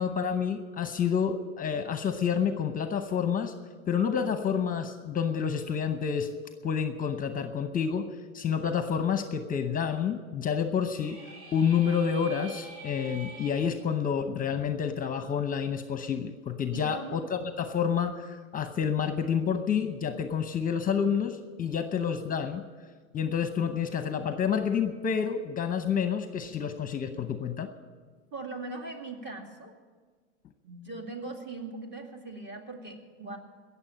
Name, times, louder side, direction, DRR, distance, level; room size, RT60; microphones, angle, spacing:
voice 1, 0.0-3.5 3.9-6.3 6.6-8.1 8.3-11.2 11.5-22.6 23.1-27.7, left 7 dB, 25° left, 9 dB, 0.8 m, -29 dB
sound 1, 10.8-13.8, right 3 dB, 55° right, 4.8 m, -46 dB
voice 2, 16.7-17.3 28.3-29.7 30.6-33.4, right 3 dB, 35° right, 4 dB, 2.3 m, -40 dB
17.5 x 7.1 x 8.6 m, 1.5 s
hypercardioid pair, 105°, 34 cm